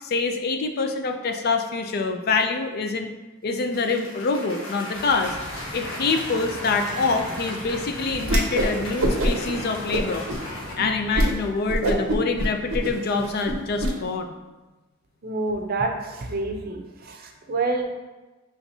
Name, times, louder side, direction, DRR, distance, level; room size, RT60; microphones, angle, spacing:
voice 1, 0.0-3.1 3.4-5.4 5.7-10.3 10.8-14.3, left 4 dB, 50° left, 6 dB, 0.4 m, -25 dB
Cheering / Applause, 3.6-10.7, left 1 dB, 75° left, 1.2 m, -36 dB
sound 1, 4.9-11.1, equal, 5° left, 1.2 m, -40 dB
Whoosh swoosh swish, 8.2-8.7 9.0-9.5 9.9-10.4 10.8-10.9 11.1-11.3 11.7-13.9, right 1 dB, 90° right, 0.7 m, -24 dB
voice 2, 15.2-17.8, right 3 dB, 45° right, 3 dB, 0.6 m, -28 dB
5.6 x 3.4 x 2.7 m, 1.2 s
head